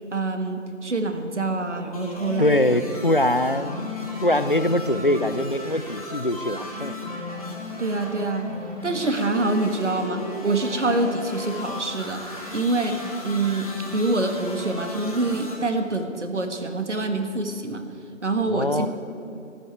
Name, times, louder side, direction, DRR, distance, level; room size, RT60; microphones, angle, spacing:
voice 1, 0.1-2.8 7.8-8.5 8.8-12.3 12.5-17.8 18.2-18.9, right 2 dB, 65° right, 6 dB, 1.7 m, -26 dB
sound 1, 1.9-15.5, left 2 dB, 30° left, 2.3 m, -36 dB
voice 2, 2.4-6.9 18.5-18.9, left 1 dB, 45° left, 12 dB, 0.5 m, -23 dB
12.5 x 8.8 x 9.3 m, 2.8 s
figure-of-eight pair, 180°, 38 cm